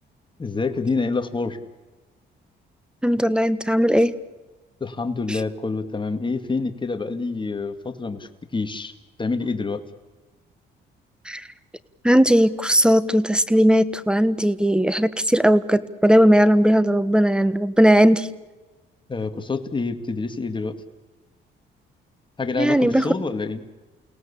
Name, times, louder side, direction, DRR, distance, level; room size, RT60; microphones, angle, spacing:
voice 1, 0.4-1.6 4.8-8.9 9.2-9.8 19.1-20.8 22.4-23.6, left 4 dB, 25° left, 7 dB, 2.3 m, -27 dB
voice 2, 3.0-4.1 5.3-5.4 11.3-11.4 12.0-18.3 22.6-23.1, equal, 5° right, 15 dB, 1.3 m, -18 dB
29.0 x 18.0 x 8.5 m, 1.2 s
cardioid pair, 90°, 20 cm